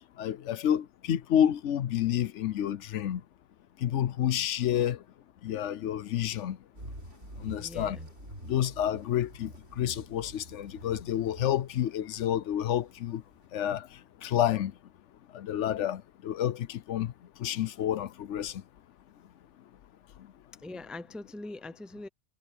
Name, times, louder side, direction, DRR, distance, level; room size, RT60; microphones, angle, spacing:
voice 1, 0.2-3.2 3.8-5.0 5.4-6.6 7.4-8.0 8.5-9.5 9.8-13.2 13.5-13.8 14.2-14.7 15.3-17.1 17.4-18.5, left 10 dB, 85° left, 1.0 m, -29 dB
sound 1, 6.7-13.4, right 1 dB, 85° right, 7.1 m, -47 dB
voice 2, 7.6-8.1 20.6-22.1, left 2 dB, ahead, 0.5 m, -42 dB
omnidirectional pair, 1.2 m